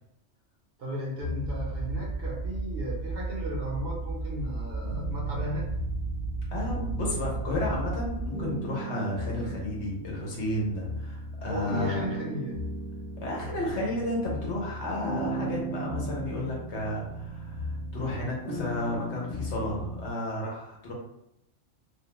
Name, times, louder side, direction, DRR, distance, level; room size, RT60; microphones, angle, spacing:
voice 1, 0.8-5.7 11.5-12.6, equal, 60° right, -2 dB, 0.7 m, -36 dB
sound 1, 1.2-2.9 3.6-20.1, right 1 dB, 35° left, 1.2 m, -37 dB
sound 2, 1.4-8.3, right 3 dB, 15° left, 0.5 m, -34 dB
voice 2, 6.5-12.0 13.2-20.9, left 1 dB, 65° left, -3 dB, 1.1 m, -32 dB
2.5 x 2.2 x 2.9 m, 0.83 s
omnidirectional pair, 1.3 m